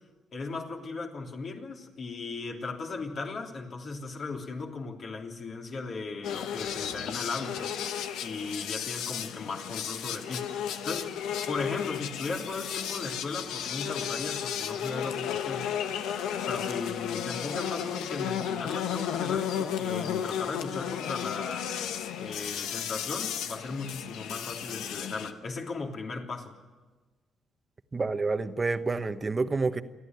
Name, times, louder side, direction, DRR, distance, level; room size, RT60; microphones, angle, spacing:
voice 1, 0.3-7.7 8.2-10.6 10.8-11.2 11.5-15.8 16.5-21.7 22.2-26.5, left 4 dB, 50° left, 1 dB, 3.3 m, -37 dB
sound 1, 6.2-25.3, left 9 dB, 90° left, 1.1 m, -33 dB
voice 2, 27.9-29.8, right 3 dB, 30° right, 10 dB, 1.1 m, -28 dB
29.0 x 11.5 x 9.5 m, 1.3 s
cardioid pair, 90°, 0 cm